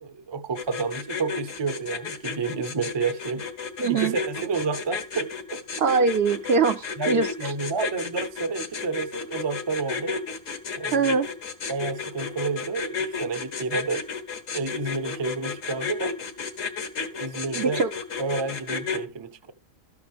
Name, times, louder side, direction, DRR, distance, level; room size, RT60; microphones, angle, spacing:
voice 1, 0.0-3.5 3.9-5.6 7.0-10.2 10.8-11.2 11.7-14.0 14.5-16.2 17.1-17.8 18.2-19.5, right 4 dB, 25° right, 0.6 m, -30 dB
sound 1, 0.6-19.0, left 5 dB, 70° left, 1.7 m, -32 dB
voice 2, 3.8-4.2 5.8-7.3 7.8-7.9 10.9-11.3 17.5-17.9, right 5 dB, 55° right, 0.9 m, -22 dB
13.0 x 9.6 x 3.5 m
omnidirectional pair, 1.4 m